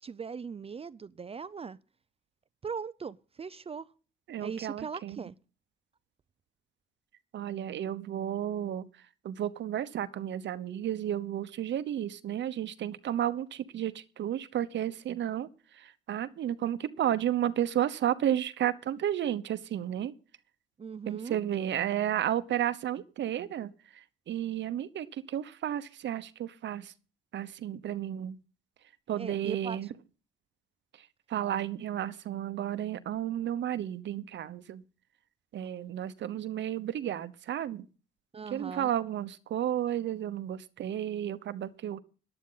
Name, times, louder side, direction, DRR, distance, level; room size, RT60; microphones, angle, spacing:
voice 1, 0.0-1.8 2.6-3.9 4.4-5.3 20.8-21.4 29.2-29.9 36.3-36.4 38.3-38.9, right 6 dB, 30° right, 0.5 m, -39 dB
voice 2, 4.3-5.2 7.3-8.9 9.2-15.5 15.7-20.1 21.1-26.9 27.3-28.4 29.1-29.9 31.3-34.8 35.5-37.8 38.5-42.0, right 11 dB, 65° right, 1.0 m, -32 dB
15.0 x 11.0 x 3.9 m
cardioid pair, 90°, 20 cm